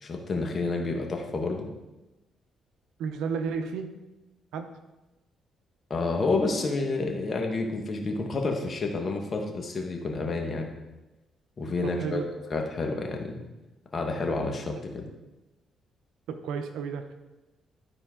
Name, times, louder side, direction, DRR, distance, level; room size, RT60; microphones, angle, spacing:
voice 1, 0.0-1.7 5.9-10.7 11.6-12.2 12.5-13.3 13.9-15.0, left 3 dB, 40° left, 2 dB, 1.5 m, -29 dB
voice 2, 3.0-3.9 4.5-4.7 11.8-12.2 16.3-17.1, right 6 dB, 90° right, 8 dB, 0.7 m, -32 dB
12.5 x 4.4 x 3.8 m, 1.1 s
cardioid pair, 90°, 0 cm